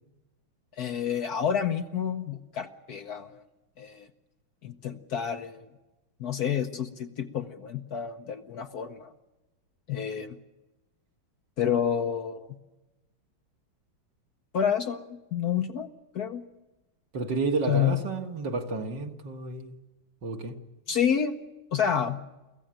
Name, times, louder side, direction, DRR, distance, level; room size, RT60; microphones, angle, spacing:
voice 1, 0.8-3.4 3.8-4.1 4.6-5.7 6.2-9.1 9.9-10.4 11.6-12.6 14.5-15.9 16.1-16.4 17.7-18.0 20.9-21.4 21.7-22.2, left 8 dB, 55° left, 7 dB, 1.3 m, -29 dB
voice 2, 17.1-19.8 20.2-20.6, right 3 dB, 60° right, 4 dB, 2.1 m, -31 dB
23.5 x 15.0 x 8.9 m, 1.1 s
omnidirectional pair, 2.2 m